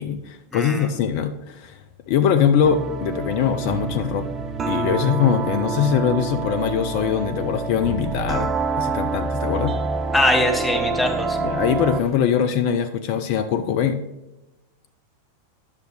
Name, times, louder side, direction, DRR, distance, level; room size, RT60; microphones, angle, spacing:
voice 1, 0.0-1.8 2.1-4.3 4.7-8.5 8.8-9.7 11.4-14.0, left 8 dB, 45° left, 9 dB, 0.5 m, -22 dB
voice 2, 0.5-0.9 10.1-11.4, left 1 dB, 10° left, 3 dB, 1.2 m, -21 dB
sound 1, 2.6-12.1, right 4 dB, 25° right, 0.6 m, -27 dB
10.0 x 6.4 x 3.3 m, 0.99 s
figure-of-eight pair, 90°, 0 cm